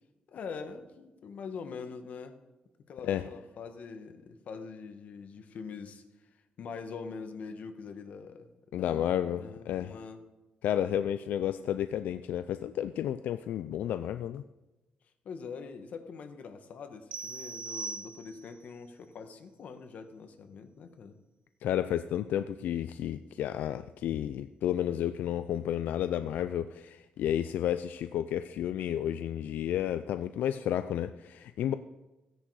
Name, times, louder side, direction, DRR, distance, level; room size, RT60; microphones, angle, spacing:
voice 1, 0.3-2.4 2.9-6.3 6.6-8.5 8.8-10.2 15.2-21.2, left 5 dB, 60° left, 1.4 m, -43 dB
voice 2, 8.7-10.0 10.6-14.5 21.6-31.7, left 10 dB, 85° left, 0.4 m, -31 dB
sound 1, 17.1-18.6, right 4 dB, 35° right, 0.6 m, -40 dB
16.0 x 10.0 x 4.8 m
cardioid pair, 140°, 3 cm